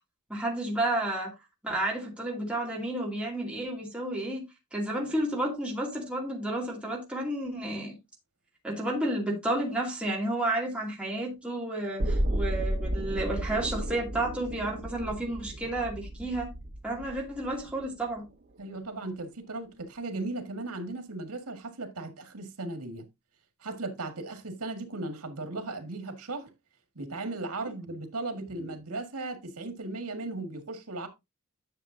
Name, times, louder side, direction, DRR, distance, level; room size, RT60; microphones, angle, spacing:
voice 1, 0.3-1.3 1.6-4.4 4.7-7.9 8.6-16.5 16.8-18.3, right 1 dB, 5° right, 2.5 m, -31 dB
sound 1, 12.0-18.0 18.3-18.4, right 1 dB, 45° right, 1.2 m, -33 dB
voice 2, 18.6-23.0 23.6-26.5 27.0-31.1, right 2 dB, 90° right, 1.9 m, -37 dB
11.0 x 6.6 x 2.7 m
head